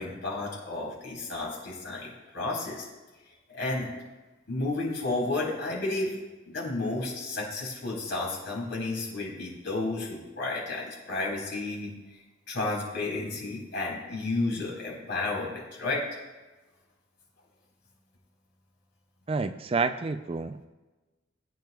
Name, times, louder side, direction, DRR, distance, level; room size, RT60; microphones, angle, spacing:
voice 1, 0.0-2.9 3.5-3.9 4.5-6.2 6.4-11.9 12.5-16.0, left 2 dB, 60° left, -3 dB, 4.3 m, -32 dB
voice 2, 19.3-20.6, right 4 dB, 30° right, 10 dB, 0.4 m, -29 dB
20.0 x 9.2 x 2.4 m, 1.2 s
head